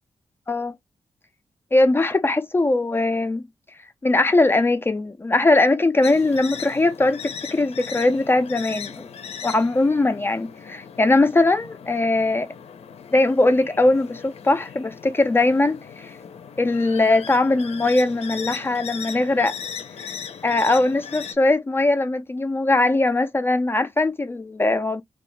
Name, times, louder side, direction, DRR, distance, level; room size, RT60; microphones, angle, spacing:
voice 1, 1.7-3.4 4.0-9.1 9.4-12.5 13.1-16.1 16.6-19.5 20.0-20.1 20.4-25.0, left 2 dB, 20° left, 0.4 m, -20 dB
sound 1, 6.0-21.3, left 7 dB, 75° left, 0.5 m, -38 dB
2.7 x 2.4 x 3.2 m
wide cardioid pair, 165°, 11 cm